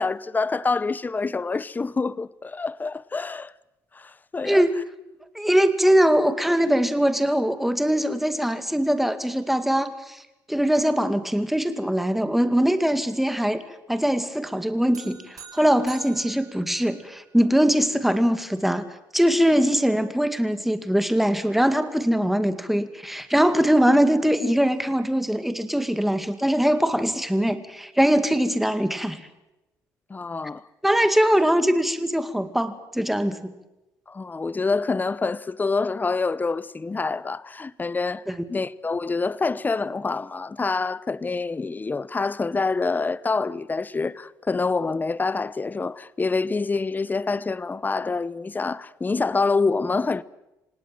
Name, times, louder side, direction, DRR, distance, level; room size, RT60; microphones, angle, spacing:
voice 1, 0.0-3.5 3.9-4.7 30.1-30.6 34.1-50.2, left 4 dB, 20° left, 0.8 m, -26 dB
voice 2, 5.3-10.2 10.5-13.6 13.9-18.8 19.1-29.2 30.8-33.5 38.3-38.4, equal, ahead, 2.2 m, -22 dB
sound 1, 14.9-17.4, right 6 dB, 45° right, 5.1 m, -46 dB
27.0 x 18.5 x 7.7 m
cardioid pair, 90°, 8 cm